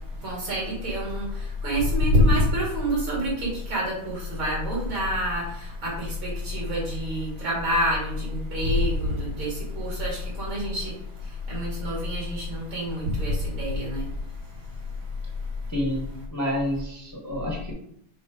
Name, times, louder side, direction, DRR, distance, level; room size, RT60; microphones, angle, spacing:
voice 1, 0.2-1.3 1.6-10.9 11.5-14.1, left 1 dB, 65° right, -4 dB, 3.5 m, -26 dB
voice 2, 15.7-17.7, equal, 10° left, -1 dB, 1.0 m, -29 dB
6.1 x 4.1 x 5.0 m, 0.70 s
omnidirectional pair, 2.4 m